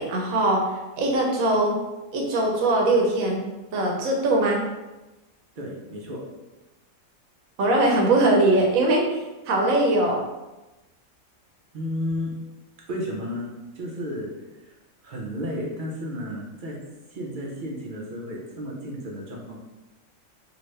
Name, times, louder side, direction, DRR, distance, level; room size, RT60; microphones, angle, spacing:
voice 1, 0.0-1.7 2.1-3.4 3.7-4.6 7.6-10.2, right 2 dB, 80° right, 0 dB, 1.1 m, -21 dB
voice 2, 5.6-6.2 11.7-12.3 12.9-13.5 13.8-14.3 15.0-16.8 17.1-19.6, equal, 55° right, -2 dB, 0.5 m, -32 dB
2.8 x 2.5 x 3.1 m, 1.1 s
omnidirectional pair, 1.4 m